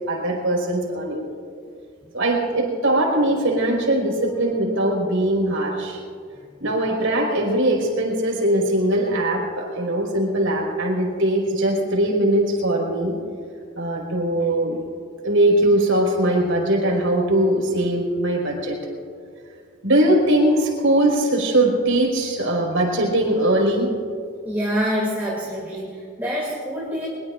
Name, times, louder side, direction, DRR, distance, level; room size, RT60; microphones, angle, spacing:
voice 1, 0.1-1.3 2.1-6.0 6.6-13.1 13.8-14.8 15.2-18.8 19.8-23.9 25.2-25.3, right 1 dB, 75° right, -1 dB, 4.7 m, -21 dB
voice 2, 24.4-27.1, equal, 10° right, -5 dB, 2.6 m, -26 dB
23.5 x 22.5 x 2.5 m, 2.3 s
head